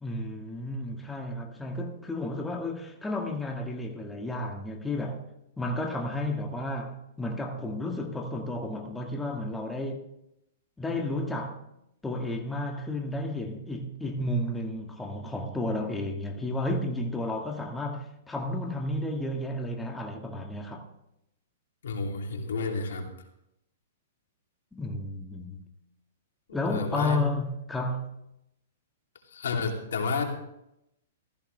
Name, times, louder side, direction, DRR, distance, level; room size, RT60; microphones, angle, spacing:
voice 1, 0.0-5.3 5.6-10.1 10.8-11.6 12.0-20.9 24.7-25.7 26.5-28.2, left 1 dB, 10° left, 1.8 m, -32 dB
voice 2, 21.8-23.1 26.6-27.2 29.3-30.2, left 4 dB, 80° left, 3.0 m, -30 dB
15.0 x 14.5 x 3.4 m
hypercardioid pair, 135°, 0 cm